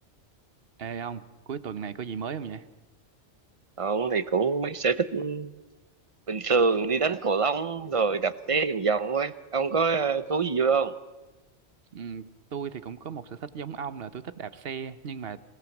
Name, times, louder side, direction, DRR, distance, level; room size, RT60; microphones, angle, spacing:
voice 1, 0.8-2.6 11.9-15.4, right 7 dB, 60° right, 14 dB, 1.2 m, -36 dB
voice 2, 3.8-5.5 6.3-11.0, right 5 dB, 35° right, 15 dB, 0.8 m, -25 dB
26.5 x 17.5 x 7.2 m, 1.1 s
omnidirectional pair, 1.2 m